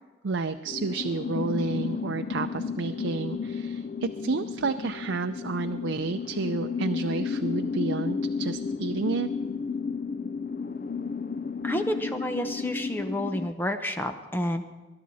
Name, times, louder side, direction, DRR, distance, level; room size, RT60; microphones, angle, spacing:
voice 1, 0.2-9.3, right 4 dB, 85° right, 8 dB, 0.5 m, -30 dB
sound 1, 0.7-13.5, left 5 dB, 45° left, 0.4 m, -32 dB
voice 2, 11.6-14.6, equal, 10° left, 7 dB, 0.7 m, -30 dB
21.0 x 11.5 x 4.2 m, 1.2 s
head